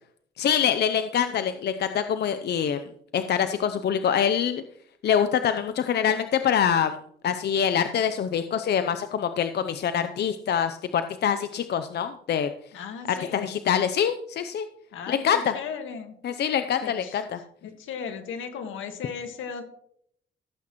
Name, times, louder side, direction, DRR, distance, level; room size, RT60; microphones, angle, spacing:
voice 1, 0.4-2.9 3.1-4.6 5.0-7.0 7.2-12.5 13.1-14.7 15.1-15.6 16.2-17.4, left 8 dB, 55° left, 10 dB, 0.7 m, -25 dB
voice 2, 12.7-13.4 14.9-16.1 16.8-17.2 17.6-19.6, left 6 dB, 80° left, 6 dB, 1.7 m, -36 dB
15.5 x 8.4 x 3.1 m, 0.68 s
cardioid pair, 90°, 20 cm